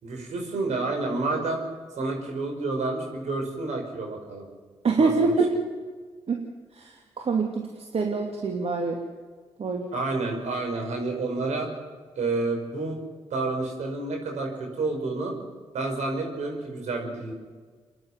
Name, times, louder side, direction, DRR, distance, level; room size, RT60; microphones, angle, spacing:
voice 1, 0.0-1.6 2.0-4.5 5.0-5.4 9.9-11.7 12.2-13.0 13.3-15.3 15.7-17.3, right 3 dB, 75° right, 2 dB, 5.6 m, -29 dB
voice 2, 4.8-5.5 6.3-6.4 6.7-9.0 9.6-9.8, right 4 dB, 55° right, 1 dB, 2.7 m, -25 dB
27.5 x 11.0 x 9.7 m, 1.5 s
supercardioid pair, 45°, 12 cm